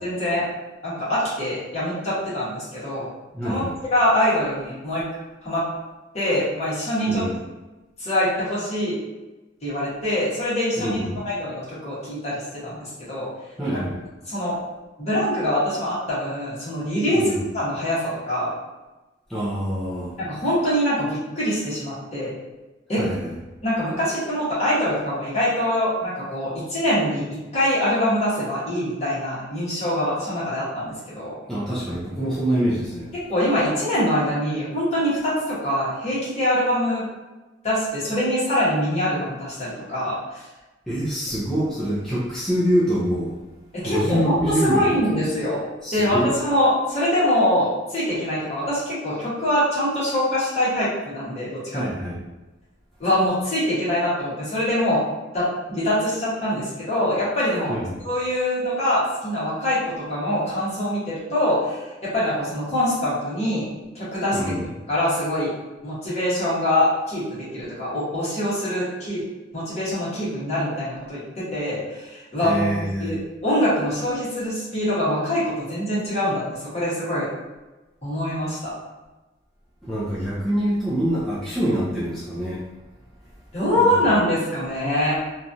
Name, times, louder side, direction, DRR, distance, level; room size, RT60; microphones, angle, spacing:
voice 1, 0.0-0.4 0.8-3.1 3.4-3.6 3.9-5.0 5.4-5.6 6.1-7.2 8.0-9.0 9.6-11.0 11.2-13.3 14.3-14.5 15.0-17.2 17.5-18.5 20.2-22.3 22.9-23.0 23.6-27.3 27.5-31.3 33.3-37.1 37.6-40.4 43.7-45.6 45.9-51.8 53.0-55.0 55.3-57.7 58.0-63.7 63.9-64.4 64.9-65.5 65.8-69.2 69.5-72.6 73.0-76.4 76.7-77.3 78.0-78.7 83.5-85.2, left 1 dB, 35° left, -9 dB, 1.3 m, -24 dB
voice 2, 3.3-3.7 7.1-7.4 10.8-11.2 13.6-14.0 17.1-17.4 19.3-20.2 23.0-23.3 31.5-33.1 40.9-43.4 43.8-45.1 45.8-46.3 51.7-52.2 57.7-57.9 64.3-64.6 72.4-73.1 79.8-82.6 83.8-84.2, equal, 5° left, -10 dB, 0.5 m, -25 dB
3.1 x 2.4 x 2.6 m, 1.1 s
head